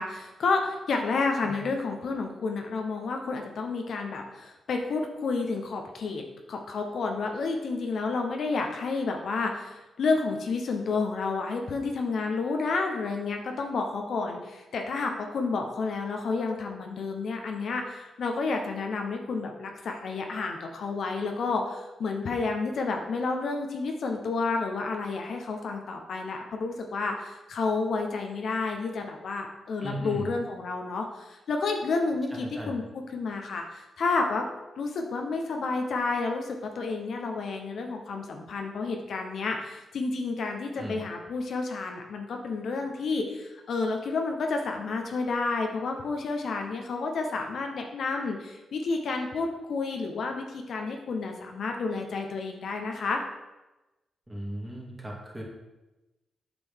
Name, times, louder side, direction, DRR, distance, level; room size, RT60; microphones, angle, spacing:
voice 1, 0.0-6.2 6.5-32.8 33.1-34.4 34.8-53.2, left 4 dB, 70° left, 3 dB, 0.9 m, -30 dB
voice 2, 29.8-30.3 32.3-32.8 40.8-41.0 54.3-55.4, equal, 15° right, -3 dB, 2.4 m, -36 dB
8.0 x 5.2 x 3.6 m, 1.0 s
cardioid pair, 65°, 0 cm